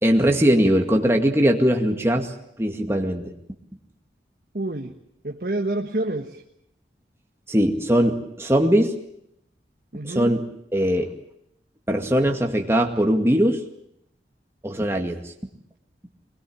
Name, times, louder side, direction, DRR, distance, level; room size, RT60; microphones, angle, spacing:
voice 1, 0.0-2.3 2.6-3.3 7.5-8.9 10.0-10.4 10.7-11.1 11.9-13.6 14.6-15.3, equal, 15° right, 3 dB, 2.1 m, -20 dB
voice 2, 4.5-5.0 5.2-6.4 9.9-10.4, right 1 dB, 55° right, 2 dB, 1.5 m, -28 dB
23.0 x 20.5 x 8.8 m, 0.76 s
head